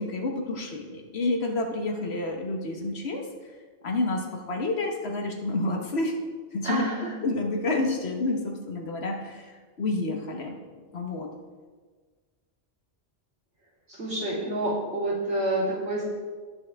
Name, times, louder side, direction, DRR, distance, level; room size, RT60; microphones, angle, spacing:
voice 1, 0.0-3.2 3.8-6.1 6.5-6.8 7.2-9.4 9.8-10.5 10.9-11.3, left 2 dB, 65° left, 2 dB, 1.4 m, -29 dB
voice 2, 6.6-7.0 13.9-16.0, right 1 dB, 65° right, -7 dB, 3.5 m, -28 dB
17.5 x 6.2 x 3.5 m, 1.4 s
omnidirectional pair, 1.2 m